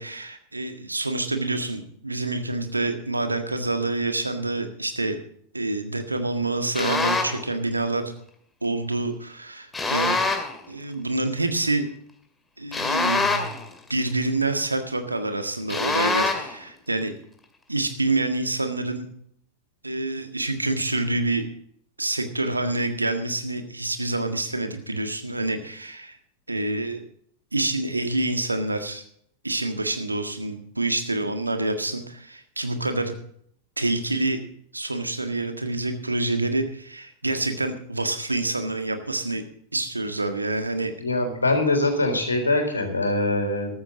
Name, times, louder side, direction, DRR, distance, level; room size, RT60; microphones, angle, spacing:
voice 1, 0.0-5.2 5.5-8.1 8.6-10.2 10.7-11.8 12.6-13.5 13.9-17.1 17.7-19.1 19.8-21.4 22.0-26.2 26.5-27.0 27.5-29.0 29.4-33.1 33.8-34.4 34.7-39.4 39.7-40.9, right 2 dB, 80° right, 7 dB, 1.7 m, -27 dB
sound 1, 6.7-7.4 9.7-10.6 12.7-13.7 15.7-16.6, left 3 dB, 10° left, 2.2 m, -24 dB
voice 2, 41.0-43.8, left 2 dB, 80° left, 4 dB, 3.6 m, -23 dB
14.5 x 12.5 x 3.9 m, 0.65 s
figure-of-eight pair, 90°, 0 cm